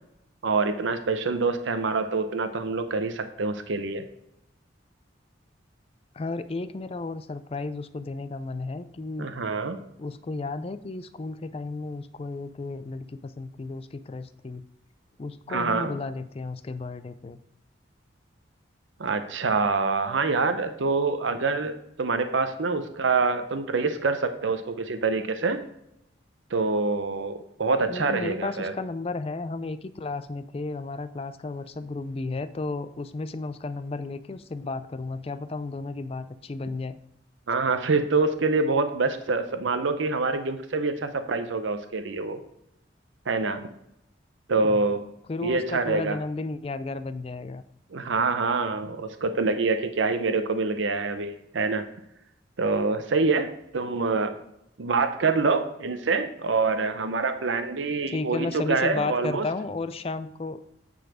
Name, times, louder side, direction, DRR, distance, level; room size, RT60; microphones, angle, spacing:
voice 1, 0.4-4.1 9.2-9.8 15.5-15.9 19.0-25.6 26.5-28.7 37.5-42.4 43.3-43.7 44.5-45.1 45.4-46.2 47.9-51.9 52.6-54.3 54.8-59.5, right 4 dB, 75° right, 9 dB, 0.7 m, -26 dB
voice 2, 6.1-9.3 10.0-14.7 15.2-17.4 27.9-37.0 44.7-44.8 45.3-47.6 58.1-60.6, left 3 dB, 30° left, 13 dB, 0.4 m, -33 dB
9.2 x 4.1 x 4.9 m, 0.81 s
head